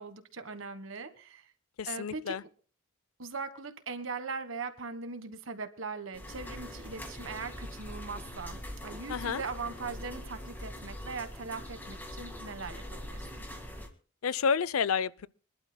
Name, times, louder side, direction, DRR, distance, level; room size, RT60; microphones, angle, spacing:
voice 1, 0.0-1.5 1.9-2.4 3.2-13.4, right 4 dB, 65° right, 1.4 m, -40 dB
voice 2, 1.8-2.4 9.1-9.4 14.2-15.3, left 6 dB, 85° left, 0.5 m, -30 dB
sound 1, 6.1-13.9, left 1 dB, 10° left, 1.8 m, -43 dB
25.5 x 11.5 x 2.2 m
head